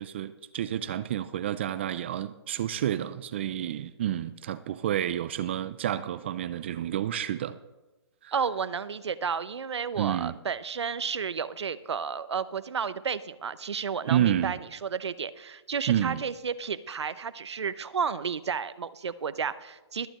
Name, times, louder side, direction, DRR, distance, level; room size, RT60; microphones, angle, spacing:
voice 1, 0.0-7.6 8.2-8.3 10.0-10.4 14.1-14.6 15.9-16.2, right 11 dB, 25° right, 0.3 m, -29 dB
voice 2, 8.3-20.1, right 6 dB, 75° right, 0.8 m, -32 dB
21.5 x 8.8 x 3.0 m
hypercardioid pair, 155°, 14 cm